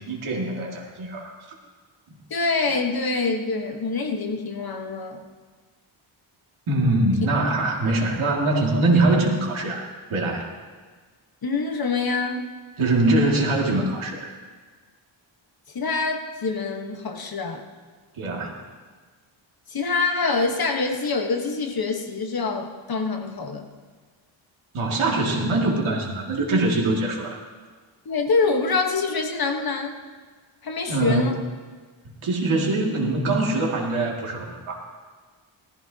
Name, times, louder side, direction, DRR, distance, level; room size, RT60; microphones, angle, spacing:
voice 1, 0.0-1.3 2.1-2.2 6.7-10.5 12.8-14.3 18.1-18.6 24.7-27.4 30.9-31.3 32.2-34.8, right 2 dB, 75° right, -1 dB, 2.3 m, -23 dB
voice 2, 2.3-5.3 11.4-12.5 15.7-17.6 19.7-23.7 28.0-30.0 30.6-31.4, left 4 dB, 45° left, 4 dB, 1.2 m, -25 dB
19.0 x 14.0 x 2.8 m, 1.5 s
wide cardioid pair, 145°, 48 cm